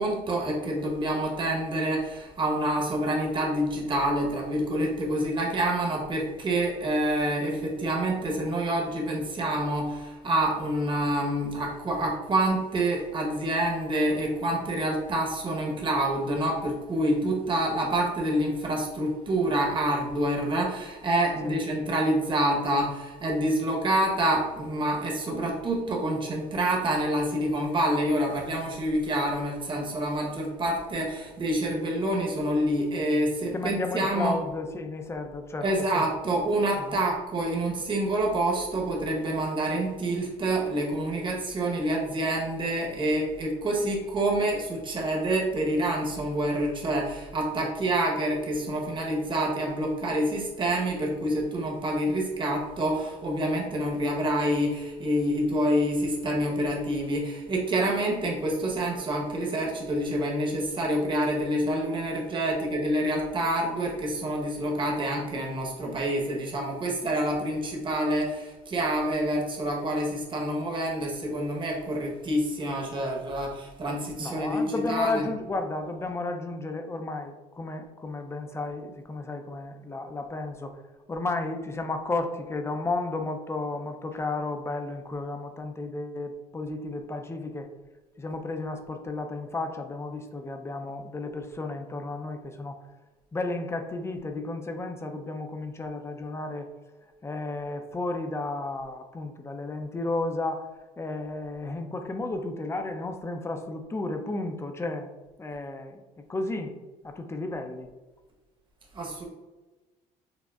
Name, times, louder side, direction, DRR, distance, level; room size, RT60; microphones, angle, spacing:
voice 1, 0.0-34.4 35.6-75.3 108.9-109.2, right 1 dB, 35° right, -1 dB, 1.0 m, -27 dB
voice 2, 33.5-35.7 35.9-36.0 36.7-37.0 47.6-47.7 74.2-80.8 81.1-87.7 88.2-92.8 93.3-96.7 97.2-100.7 101.0-105.1 105.4-106.0 106.3-106.7 107.0-107.9, left 2 dB, 15° left, 6 dB, 0.5 m, -33 dB
6.1 x 2.1 x 2.3 m, 1.2 s
cardioid pair, 100°, 15 cm